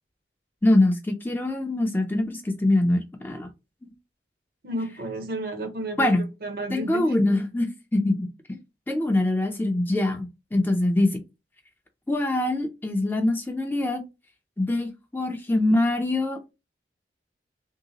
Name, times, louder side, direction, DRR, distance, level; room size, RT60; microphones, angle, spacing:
voice 1, 0.6-3.5 3.8-3.9 6.0-6.3 6.7-8.6 8.9-11.2 12.1-14.0 14.6-16.4, left 1 dB, 10° left, 0.4 m, -24 dB
voice 2, 4.6-7.1, right 1 dB, 55° right, 0.7 m, -32 dB
3.1 x 2.8 x 2.8 m
head